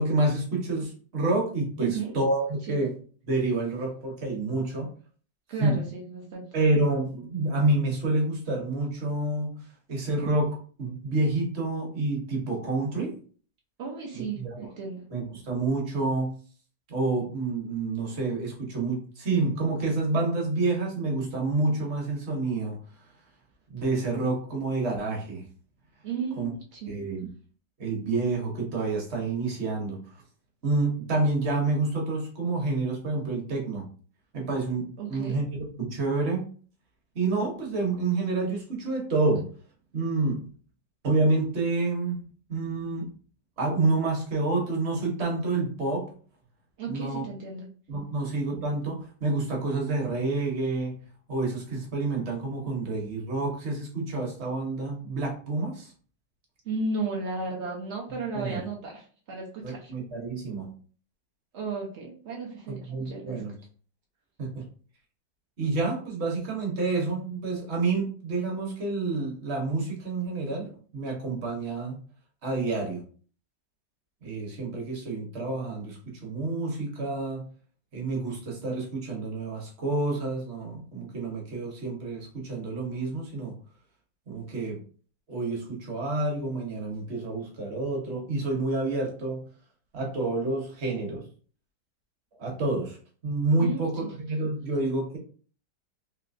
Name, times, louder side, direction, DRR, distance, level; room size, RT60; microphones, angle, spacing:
voice 1, 0.0-2.9 3.3-4.9 5.6-5.8 6.5-13.2 14.1-14.7 15.1-16.3 16.9-22.8 23.7-25.4 26.4-26.5 26.9-27.3 27.8-30.0 30.6-33.8 34.3-35.5 35.8-36.4 37.1-39.5 39.9-40.5 41.0-42.2 42.5-43.1 43.6-46.1 46.9-47.2 47.9-51.0 51.3-55.9 58.3-58.6 59.6-60.7 62.7-63.5 64.4-64.7 65.6-72.0 72.4-73.0 74.2-77.4 77.9-83.6 84.3-84.8 85.3-89.4 89.9-91.2 92.4-93.0 93.2-95.2, right 3 dB, 45° right, -1 dB, 1.0 m, -28 dB
voice 2, 1.8-2.1 2.7-2.9 5.5-6.5 13.8-15.1 26.0-27.1 35.0-35.4 46.8-47.7 56.6-59.9 61.5-63.4 93.6-93.8, right 4 dB, 70° right, -2 dB, 0.6 m, -34 dB
3.2 x 2.8 x 2.5 m, 0.42 s
omnidirectional pair, 2.0 m